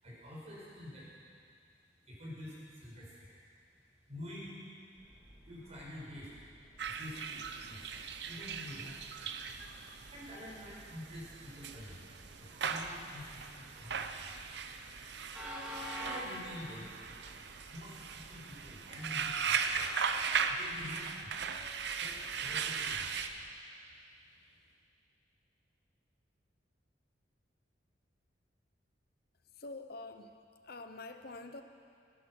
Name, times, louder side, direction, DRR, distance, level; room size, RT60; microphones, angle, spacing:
voice 1, 0.0-1.1 2.1-3.4 4.0-4.6 5.5-6.4 6.8-9.6 9.9-12.1 12.4-14.3 14.6-16.9 17.5-19.9 20.5-23.3, left 1 dB, 40° right, -6 dB, 5.4 m, -48 dB
Train, 4.9-23.5, equal, 5° right, 2.4 m, -52 dB
sound 1, 6.8-23.3, right 6 dB, 65° right, 0.8 m, -38 dB
Doorbell, 18.9-23.7, left 1 dB, 15° left, 2.9 m, -64 dB
voice 2, 29.4-30.4 30.6-31.6, left 2 dB, 60° left, 8 dB, 0.9 m, -46 dB
20.0 x 11.0 x 6.2 m, 2.3 s
head